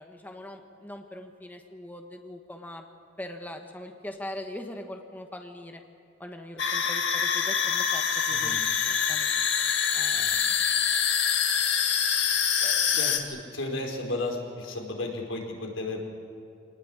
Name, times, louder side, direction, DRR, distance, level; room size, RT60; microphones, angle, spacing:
voice 1, 0.0-2.8 3.2-5.8 6.2-10.3, left 1 dB, 10° left, 4 dB, 1.3 m, -42 dB
sound 1, 6.6-13.2, left 7 dB, 65° left, 2.1 m, -25 dB
voice 2, 8.3-8.6 10.2-10.5 12.6-16.0, left 2 dB, 85° left, 1 dB, 4.7 m, -34 dB
25.5 x 19.5 x 8.8 m, 2.6 s
head